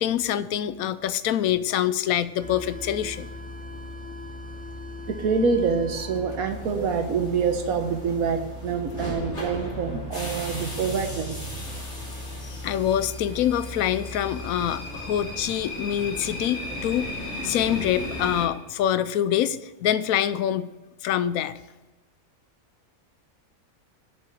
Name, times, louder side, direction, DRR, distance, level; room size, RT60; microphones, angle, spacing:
voice 1, 0.0-3.3 12.6-17.2 17.4-20.7 21.0-21.5, left 10 dB, 70° left, 15 dB, 1.0 m, -25 dB
sound 1, 2.4-18.5, left 1 dB, 50° left, 3.1 m, -36 dB
voice 2, 5.1-11.8, right 5 dB, 70° right, 7 dB, 1.5 m, -26 dB
7.6 x 6.8 x 7.7 m, 1.1 s
omnidirectional pair, 1.6 m